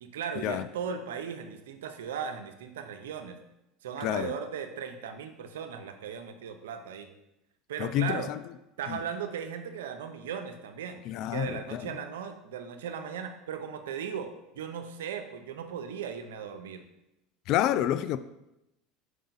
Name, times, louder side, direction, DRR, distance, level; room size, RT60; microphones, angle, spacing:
voice 1, 0.0-3.4 3.8-7.1 7.7-8.3 8.8-11.0 11.3-16.8, right 7 dB, 85° right, 0.6 m, -37 dB
voice 2, 4.0-4.3 7.8-8.4 8.9-9.0 11.1-11.9 17.5-18.2, left 11 dB, 60° left, 0.3 m, -28 dB
5.5 x 4.8 x 4.0 m
supercardioid pair, 95°, 0 cm